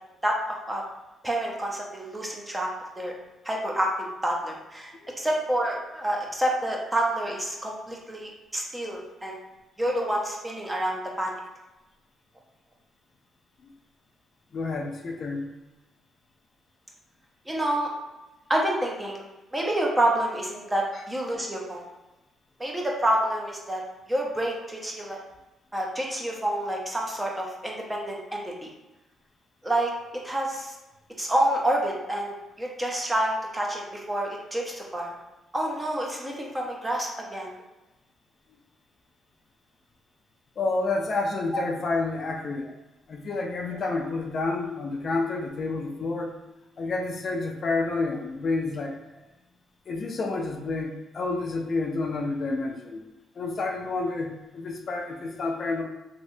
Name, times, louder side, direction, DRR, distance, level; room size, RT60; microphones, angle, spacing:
voice 1, 0.2-0.8 1.2-2.7 3.0-3.1 3.4-3.9 4.2-4.9 5.2-9.4 9.8-11.3 17.5-17.9 18.5-19.2 19.5-21.8 22.6-23.8 24.1-25.2 25.7-28.4 29.6-29.9 30.2-30.7 31.2-35.1 35.5-37.5, right 1 dB, 15° right, -1 dB, 0.7 m, -28 dB
voice 2, 14.5-15.5 20.9-21.0 40.6-42.7 43.1-46.3 46.8-49.0 49.9-53.0 53.4-55.8, left 3 dB, 50° left, 2 dB, 0.4 m, -29 dB
3.2 x 2.7 x 2.6 m, 1.0 s
cardioid pair, 90°, 0 cm